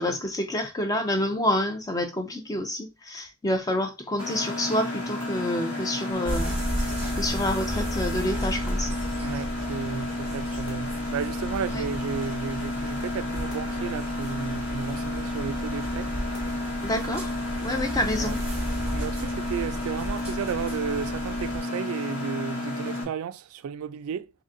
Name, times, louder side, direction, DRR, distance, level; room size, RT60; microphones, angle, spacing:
voice 1, 0.0-8.9 11.7-11.8 16.8-17.3 17.6-18.4, left 1 dB, 15° left, 0.4 m, -28 dB
Mechanisms, 4.2-23.0, left 1 dB, 90° left, 1.9 m, -32 dB
sound 1, 6.2-21.6, equal, 5° right, 1.1 m, -34 dB
sound 2, 6.5-9.6 9.9-10.0 10.2-10.8 11.5-12.5 13.0-13.7 14.3-15.3 15.8-16.5 17.0-17.5 18.0-18.4 18.9-19.5 20.0-20.7, equal, 65° left, 1.0 m, -44 dB
voice 2, 9.2-16.1 18.2-18.4 18.9-24.3, right 7 dB, 85° right, 0.3 m, -33 dB
3.8 x 3.3 x 2.5 m
head